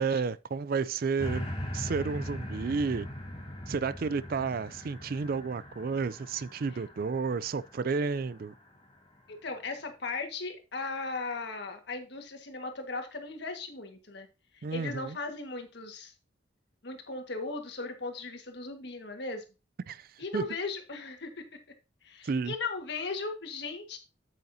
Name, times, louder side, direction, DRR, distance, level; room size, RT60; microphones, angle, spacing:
voice 1, 0.0-1.4 1.7-3.1 3.7-8.5 14.6-15.2 19.9-20.1 20.3-20.5 22.2-22.5, right 5 dB, 50° right, 0.4 m, -31 dB
sound 1, 1.2-8.6 9.1-9.2, equal, 30° left, 2.6 m, -40 dB
voice 2, 9.3-14.3 14.5-16.1 16.8-19.4 20.2-21.4 22.0-24.0, left 3 dB, 60° left, 1.7 m, -37 dB
8.9 x 7.9 x 2.8 m
head